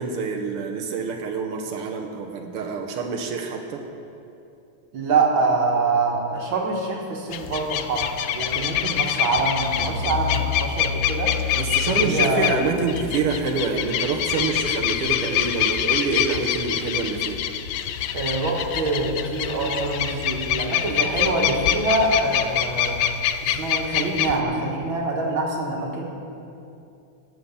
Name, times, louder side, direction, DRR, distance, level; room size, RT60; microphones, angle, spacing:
voice 1, 0.0-3.9 11.6-17.4, right 4 dB, 85° right, 3 dB, 1.8 m, -27 dB
voice 2, 4.9-11.3 11.9-12.5 18.1-23.1 23.4-26.0, right 3 dB, 65° right, 0 dB, 2.3 m, -25 dB
sound 1, 7.3-24.4, left 10 dB, 80° left, 0.9 m, -25 dB
sound 2, 9.8-15.2, left 6 dB, 50° left, 0.9 m, -32 dB
16.0 x 6.3 x 7.1 m, 2.6 s
omnidirectional pair, 2.4 m